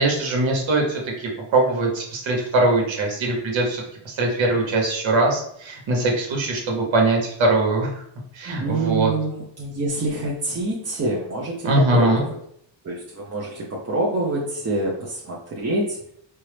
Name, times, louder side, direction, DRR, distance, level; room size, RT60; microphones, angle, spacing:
voice 1, 0.0-7.9 8.3-9.1 11.6-12.2, right 2 dB, 75° right, 0 dB, 1.1 m, -21 dB
voice 2, 8.6-12.4 12.8-16.0, right 2 dB, 35° right, -4 dB, 0.7 m, -26 dB
4.4 x 2.0 x 3.2 m, 0.69 s
cardioid pair, 80°, 47 cm